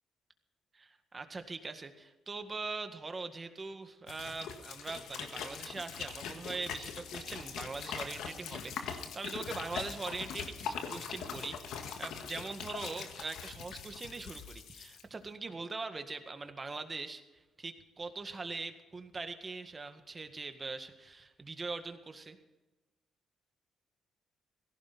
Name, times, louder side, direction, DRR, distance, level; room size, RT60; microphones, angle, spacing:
voice 1, 0.7-22.4, right 3 dB, 30° right, 7 dB, 1.8 m, -42 dB
sound 1, 4.1-15.0, left 6 dB, 85° left, 1.8 m, -42 dB
17.5 x 15.5 x 4.2 m, 1.1 s
cardioid pair, 90°, 0 cm